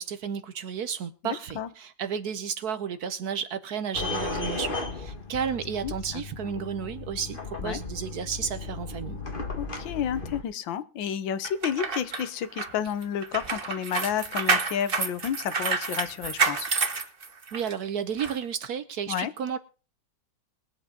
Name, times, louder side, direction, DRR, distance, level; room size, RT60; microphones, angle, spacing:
voice 1, 0.0-9.2 17.5-19.6, right 7 dB, 60° right, 1.1 m, -32 dB
voice 2, 1.2-1.7 5.8-6.2 7.6-7.8 9.6-16.7 19.1-19.3, left 9 dB, 75° left, 1.6 m, -31 dB
sound 1, 3.9-10.4, left 3 dB, 30° left, 1.6 m, -35 dB
sound 2, 11.4-17.7 18.2-18.3, right 4 dB, 30° right, 1.3 m, -29 dB
21.5 x 8.2 x 3.8 m
omnidirectional pair, 2.1 m